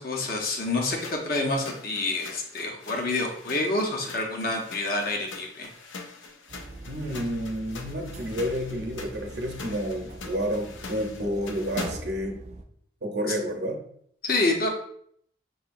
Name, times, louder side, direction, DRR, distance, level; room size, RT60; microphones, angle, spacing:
voice 1, 0.0-5.7 13.3-13.4 14.2-14.7, left 2 dB, 50° left, 1 dB, 0.7 m, -27 dB
sound 1, 0.9-12.2, left 4 dB, 85° left, 0.5 m, -43 dB
sound 2, 6.5-12.6, right 2 dB, 35° right, 0.4 m, -43 dB
voice 2, 6.9-12.4 13.0-13.8, equal, 60° right, 1 dB, 0.8 m, -30 dB
5.7 x 2.8 x 2.5 m, 0.66 s
head